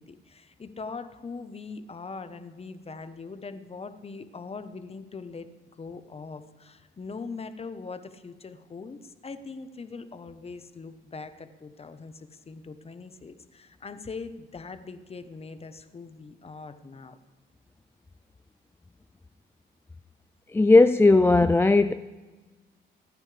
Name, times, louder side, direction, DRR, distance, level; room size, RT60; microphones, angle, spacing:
voice 1, 0.0-17.2, left 4 dB, 30° left, 10 dB, 1.1 m, -41 dB
voice 2, 20.5-21.9, left 3 dB, 10° left, 10 dB, 0.4 m, -17 dB
25.5 x 9.6 x 3.4 m, 1.3 s
cardioid pair, 90°, 20 cm